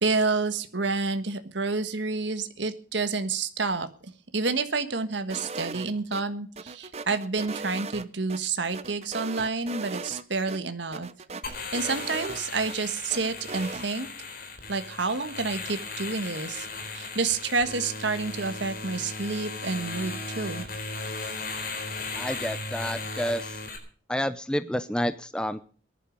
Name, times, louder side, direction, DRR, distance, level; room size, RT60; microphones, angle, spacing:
voice 1, 0.0-3.9 4.3-11.1 11.7-14.1 14.7-16.7 16.9-20.7, right 4 dB, 70° right, 9 dB, 1.5 m, -29 dB
sound 1, 5.3-6.2 6.6-8.4 8.7-10.2 10.5-10.6 10.9-12.8 13.1-13.9, right 4 dB, 35° right, 0.8 m, -38 dB
sound 2, 11.4-23.8, left 3 dB, 50° left, 4.0 m, -36 dB
voice 2, 22.2-23.6 24.1-25.6, equal, 5° left, 12 dB, 0.6 m, -29 dB
19.0 x 11.5 x 5.3 m, 0.41 s
head